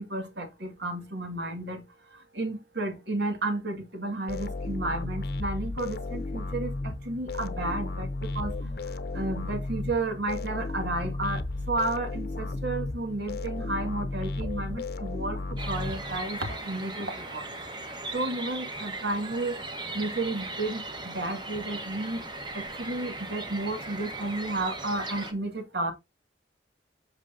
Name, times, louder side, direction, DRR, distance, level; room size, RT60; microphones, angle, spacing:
voice 1, 0.0-1.8 2.3-8.5 9.1-11.4 11.7-17.5 18.1-19.6 19.9-22.2 22.5-25.9, right 2 dB, 70° right, 2.0 m, -32 dB
sound 1, 4.3-16.5, left 2 dB, 55° left, 0.7 m, -34 dB
sound 2, 15.6-25.3, right 2 dB, 25° right, 1.2 m, -38 dB
8.2 x 6.2 x 2.7 m
head